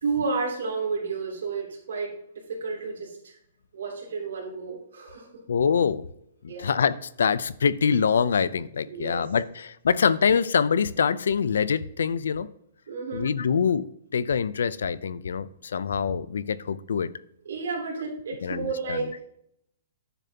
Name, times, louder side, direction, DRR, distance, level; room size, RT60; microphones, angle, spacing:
voice 1, 0.0-2.1 2.5-3.3 3.7-5.3 6.5-6.7 8.9-9.2 12.9-13.3 17.4-19.2, right 4 dB, 85° right, -2 dB, 2.9 m, -31 dB
voice 2, 5.5-6.0 6.4-12.5 13.1-13.9 14.1-17.1 18.4-19.1, left 6 dB, 90° left, 17 dB, 0.5 m, -25 dB
10.0 x 6.7 x 2.9 m, 0.74 s
hypercardioid pair, 160°, 0 cm